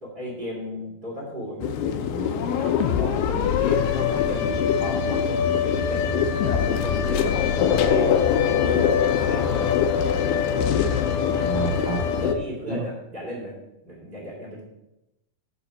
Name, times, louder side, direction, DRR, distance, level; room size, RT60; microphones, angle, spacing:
voice 1, 0.0-8.2 8.4-9.7 12.1-13.5 13.8-14.6, equal, 15° right, -6 dB, 2.5 m, -35 dB
sound 1, 1.6-12.3, left 8 dB, 80° left, 2.3 m, -23 dB
voice 2, 7.3-7.7 11.3-12.2 12.7-12.8, right 2 dB, 90° right, -1 dB, 3.9 m, -31 dB
8.0 x 6.9 x 5.9 m, 0.91 s
omnidirectional pair, 4.0 m